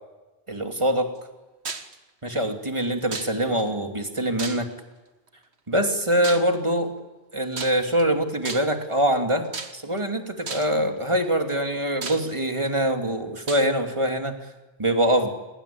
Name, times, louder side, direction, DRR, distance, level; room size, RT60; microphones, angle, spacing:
voice 1, 0.5-1.1 2.2-4.7 5.7-6.9 7.3-9.5 9.7-14.4 14.8-15.3, right 1 dB, 25° right, 4 dB, 2.8 m, -24 dB
sound 1, 1.7-2.0 3.1-3.6 4.4-4.9 6.2-6.6 7.5-8.0 8.4-8.9 9.5-10.0 10.5-10.8 11.5-11.6 12.0-12.7 13.5-13.7, right 4 dB, 80° right, 1.9 m, -34 dB
28.0 x 22.0 x 8.6 m, 1.1 s
omnidirectional pair, 1.1 m